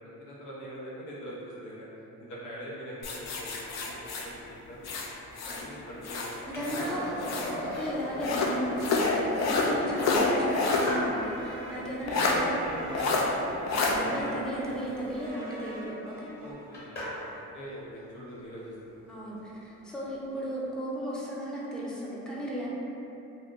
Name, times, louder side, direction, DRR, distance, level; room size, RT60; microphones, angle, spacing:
voice 1, 0.0-1.9 2.2-4.8 5.3-6.6 9.6-9.9 11.8-14.7 16.4-19.3, equal, 80° left, -6 dB, 0.8 m, -43 dB
sound 1, 3.0-5.7 6.0-7.6 8.2-10.9 11.3-11.4 12.1-12.4 12.9-13.2 13.7-13.9, left 3 dB, 60° left, 0.5 m, -28 dB
voice 2, 6.4-12.6 13.8-16.3 19.1-22.7, equal, ahead, -6 dB, 0.5 m, -35 dB
Skateboard, 6.5-17.4 20.0-20.1, equal, 30° left, 1.2 m, -41 dB
sound 2, 8.8-16.5, right 2 dB, 50° right, 0.6 m, -45 dB
2.6 x 2.2 x 3.6 m, 3.0 s
cardioid pair, 90°, 30 cm